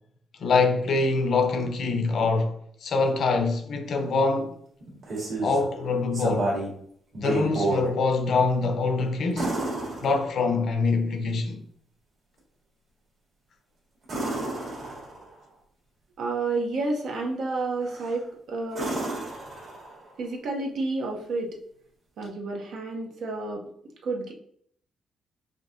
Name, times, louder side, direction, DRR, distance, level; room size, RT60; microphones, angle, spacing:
voice 1, 0.4-4.5 5.4-6.5 7.2-9.5 10.0-11.6, left 3 dB, 55° left, 0.5 m, -24 dB
sound 1, 4.8-5.7 6.1-6.8 7.1-7.9 9.4-10.6 14.0-15.3 17.8-18.2 18.7-20.1 22.2-22.3, right 2 dB, 50° right, 1.5 m, -30 dB
voice 2, 16.2-19.0 20.2-21.6 22.2-23.6 24.0-24.3, right 3 dB, 65° right, 0.6 m, -30 dB
5.1 x 2.6 x 2.5 m
wide cardioid pair, 165°, 0 cm